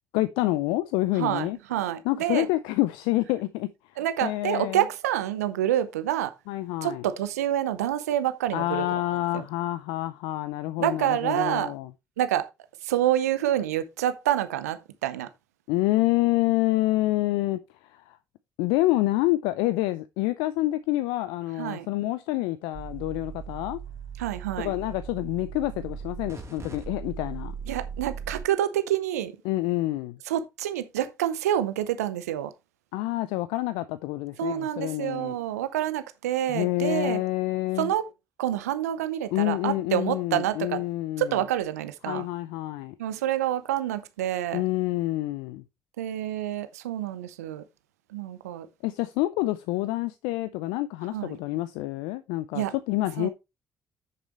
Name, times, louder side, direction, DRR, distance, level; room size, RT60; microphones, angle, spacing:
voice 1, 0.1-1.6 2.0-3.7 4.2-4.8 6.5-7.0 8.5-11.9 15.7-18.2 18.6-23.8 24.6-27.5 29.4-30.2 32.9-35.4 36.5-37.9 39.3-41.4 42.1-42.9 44.5-45.6 48.8-53.3, left 17 dB, 75° left, 0.5 m, -27 dB
voice 2, 1.2-2.5 4.0-6.3 6.8-9.0 9.3-9.4 10.8-11.7 12.2-12.5 12.8-15.3 21.6-21.9 24.2-24.7 27.7-29.4 30.3-32.5 34.4-37.2 37.8-38.1 38.4-40.8 41.2-42.3 43.0-44.6 46.0-47.6 48.1-48.7 51.1-51.4 52.5-52.7 53.2-53.3, right 12 dB, 85° right, 0.6 m, -27 dB
sound 1, 22.7-28.4, right 7 dB, 35° right, 3.3 m, -38 dB
8.5 x 6.8 x 3.0 m
hypercardioid pair, 40°, 8 cm